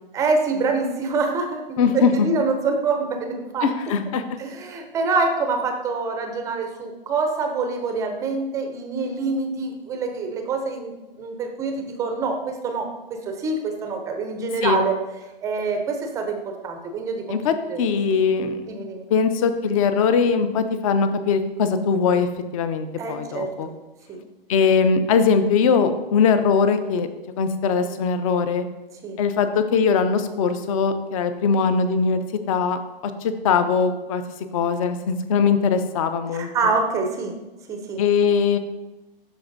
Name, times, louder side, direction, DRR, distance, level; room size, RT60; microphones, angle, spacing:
voice 1, 0.1-3.7 4.4-12.9 13.3-14.9 15.4-16.4 16.6-17.2 17.7-17.8 18.7-19.1 23.0-23.5 24.1-24.2 29.0-29.2 36.3-37.3 37.7-38.0, right 4 dB, 10° right, 4 dB, 0.5 m, -25 dB
voice 2, 1.8-2.3 3.6-4.2 14.6-14.8 17.3-18.6 19.1-23.7 24.5-27.1 27.4-28.6 29.2-32.8 33.2-34.2 34.5-36.5 38.0-38.6, left 5 dB, 35° left, 10 dB, 0.6 m, -21 dB
12.0 x 4.3 x 2.6 m, 1.1 s
hypercardioid pair, 135°, 30 cm